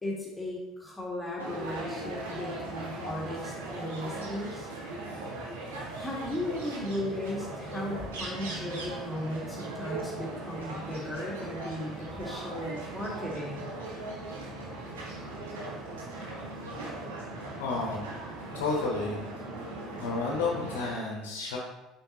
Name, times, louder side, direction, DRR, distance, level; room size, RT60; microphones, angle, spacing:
voice 1, 0.0-4.7 6.0-13.7, left 1 dB, 10° left, -4 dB, 1.7 m, -36 dB
sound 1, 1.4-20.9, right 2 dB, 75° right, 1.4 m, -39 dB
voice 2, 17.6-18.1 18.5-19.2 19.6-21.6, left 3 dB, 70° left, -1 dB, 0.9 m, -32 dB
8.7 x 5.4 x 2.9 m, 1.0 s
figure-of-eight pair, 60°, 0 cm